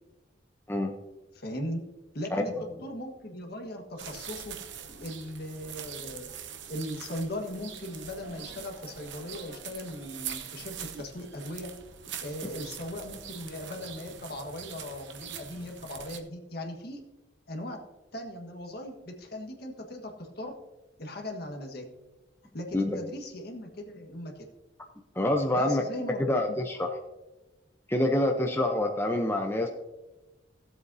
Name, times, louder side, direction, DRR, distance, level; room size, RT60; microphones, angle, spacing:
voice 1, 1.3-1.8 2.1-4.6 5.0-6.3 6.7-11.7 12.2-17.0 17.5-17.8 18.1-20.5 21.0-21.8 22.5-24.4 25.5-26.6, left 1 dB, 60° left, 3 dB, 1.5 m, -38 dB
sound 1, 4.0-16.2, right 8 dB, 80° right, 0.9 m, -43 dB
voice 2, 25.1-25.8 26.2-26.9 27.9-29.7, left 1 dB, 15° left, 3 dB, 0.7 m, -26 dB
16.5 x 7.9 x 2.7 m, 1.1 s
head